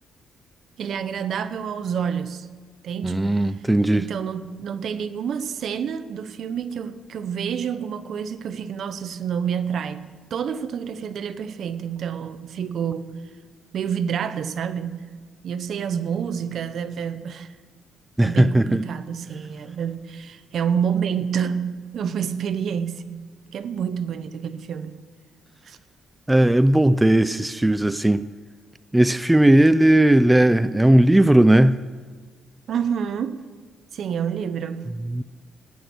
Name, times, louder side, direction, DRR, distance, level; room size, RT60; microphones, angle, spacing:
voice 1, 0.8-2.5 2.8-3.5 3.9-10.0 10.3-13.2 13.7-15.0 15.4-17.5 18.2-25.0 25.6-25.8 26.6-26.7 32.7-33.4 33.9-34.9, right 7 dB, 65° right, 0.9 m, -28 dB
voice 2, 3.0-4.1 18.2-18.8 26.3-28.3 28.9-31.8 35.1-35.2, right 1 dB, 10° right, 0.4 m, -17 dB
18.5 x 6.3 x 9.4 m
cardioid pair, 90°, 0 cm